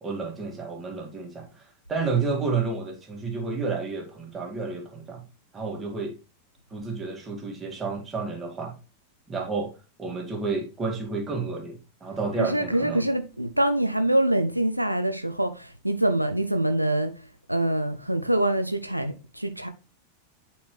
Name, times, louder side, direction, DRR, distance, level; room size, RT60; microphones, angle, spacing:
voice 1, 0.0-5.2 5.5-6.2 6.7-8.7 9.3-9.7 10.0-13.0, right 4 dB, 20° right, 2.1 m, -30 dB
voice 2, 12.4-17.2 17.5-19.7, right 1 dB, 90° right, 0.5 m, -25 dB
8.4 x 4.4 x 3.1 m
figure-of-eight pair, 90°, 0 cm